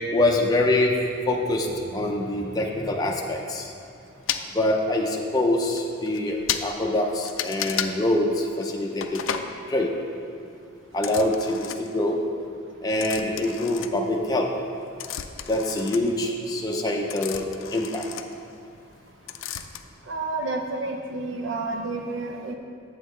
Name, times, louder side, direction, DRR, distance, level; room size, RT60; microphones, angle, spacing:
voice 1, 0.1-0.9 1.2-3.7 4.5-9.2 9.7-9.9 10.9-12.2 12.8-14.5 15.5-18.0, left 1 dB, 20° left, -1 dB, 0.5 m, -25 dB
sound 1, 4.3-4.5 5.3-5.4 5.8-5.9 6.1-6.2 6.5-6.7 7.2-7.9 9.0-9.5 10.9-12.0 13.0-14.4 14.7-19.0 19.3-19.8, left 9 dB, 80° left, 0.4 m, -33 dB
voice 2, 20.1-22.5, right 3 dB, 70° right, 3 dB, 0.6 m, -30 dB
8.5 x 7.8 x 3.2 m, 2.4 s
head